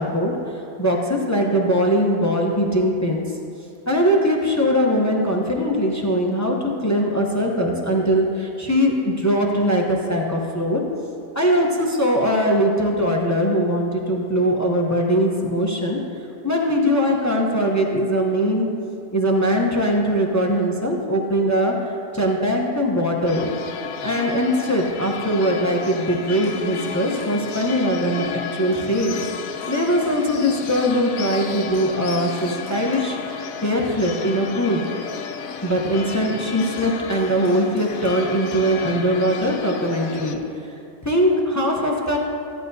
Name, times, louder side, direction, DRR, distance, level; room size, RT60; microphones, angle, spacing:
voice 1, 0.0-3.2 3.9-10.8 11.3-16.0 16.4-18.7 19.1-23.5 24.0-29.2 29.7-34.9 35.6-40.7 41.0-42.2, equal, 25° left, -1 dB, 0.4 m, -21 dB
sound 1, 23.3-40.3, left 6 dB, 65° left, 1.0 m, -33 dB
15.0 x 11.0 x 2.7 m, 2.6 s
omnidirectional pair, 1.8 m